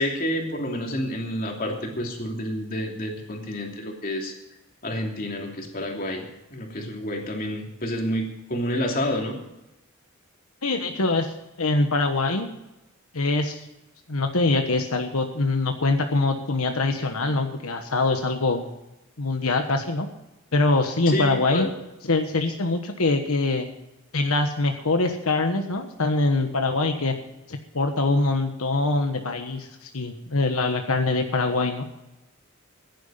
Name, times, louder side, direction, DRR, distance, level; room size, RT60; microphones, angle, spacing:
voice 1, 0.0-4.3 4.8-6.2 6.5-9.4 21.1-21.7, left 1 dB, 40° left, 1 dB, 2.9 m, -29 dB
voice 2, 10.6-12.5 13.1-13.6 14.1-18.7 19.2-20.1 20.5-21.7 22.1-23.7 24.1-27.1 27.5-31.8, left 3 dB, 85° left, 5 dB, 1.3 m, -24 dB
15.5 x 10.5 x 5.7 m, 0.94 s
head